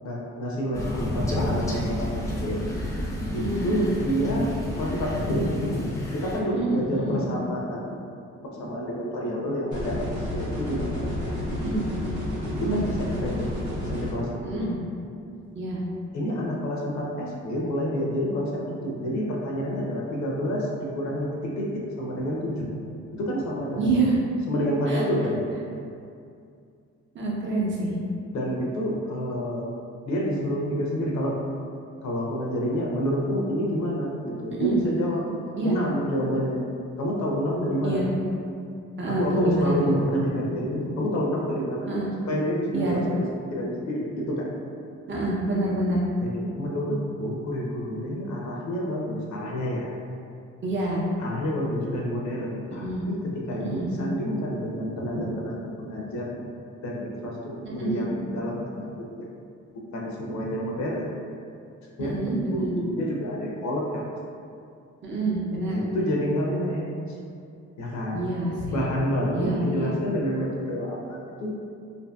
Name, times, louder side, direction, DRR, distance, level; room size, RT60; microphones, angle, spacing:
voice 1, 0.0-2.6 3.3-5.8 6.1-8.0 8.5-11.3 12.6-13.5 13.8-14.6 16.1-22.7 23.1-24.0 24.5-25.4 28.3-29.7 30.0-31.4 32.0-35.3 35.6-36.6 37.0-38.0 39.1-41.9 42.3-43.3 43.5-44.5 46.2-49.9 51.2-56.4 56.8-59.3 59.9-61.1 62.0-64.1 65.7-66.9 67.8-68.3 68.7-71.5, equal, 65° left, -2 dB, 0.5 m, -28 dB
Crow, 0.7-6.4, left 1 dB, 10° left, 0.4 m, -30 dB
voice 2, 3.3-3.9 6.5-7.3 11.6-11.9 12.5-12.9 14.4-14.8 15.5-15.8 23.8-24.2 24.9-25.0 27.1-27.9 34.6-34.8 35.6-35.8 37.8-38.1 39.0-39.9 41.9-42.1 42.7-43.0 45.1-46.0 50.6-51.0 52.7-53.1 53.6-53.9 57.6-58.0 62.0-62.7 65.0-65.8 68.1-68.9 69.3-69.9, right 2 dB, 40° right, -4 dB, 0.6 m, -27 dB
sound 1, 9.7-14.1, left 1 dB, 80° right, 0.8 m, -30 dB
2.6 x 2.5 x 2.2 m, 2.4 s
cardioid pair, 90°, 30 cm